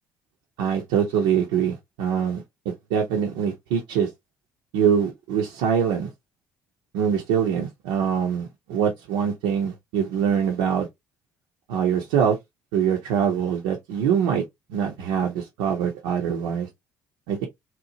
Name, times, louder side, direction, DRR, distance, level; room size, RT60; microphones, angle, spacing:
voice 1, 0.6-4.1 4.7-6.1 6.9-10.9 11.7-12.4 12.7-14.4 14.7-16.7 17.3-17.5, right 8 dB, 70° right, 0.5 m, -24 dB
2.8 x 2.0 x 2.7 m
figure-of-eight pair, 50°, 9 cm